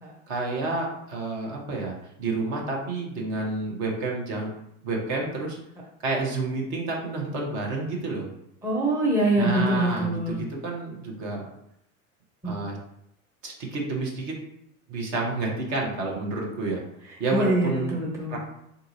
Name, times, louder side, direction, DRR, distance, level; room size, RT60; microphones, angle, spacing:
voice 1, 0.3-4.5 4.8-5.6 6.0-8.3 9.4-11.5 12.4-12.8 13.4-14.4 14.9-16.8 17.2-17.9 18.3-18.4, right 3 dB, 50° right, -1 dB, 1.1 m, -29 dB
voice 2, 8.6-10.4 12.4-12.5 17.3-18.4, right 1 dB, 5° right, -2 dB, 0.6 m, -24 dB
3.9 x 2.6 x 2.7 m, 0.77 s
figure-of-eight pair, 70°, 42 cm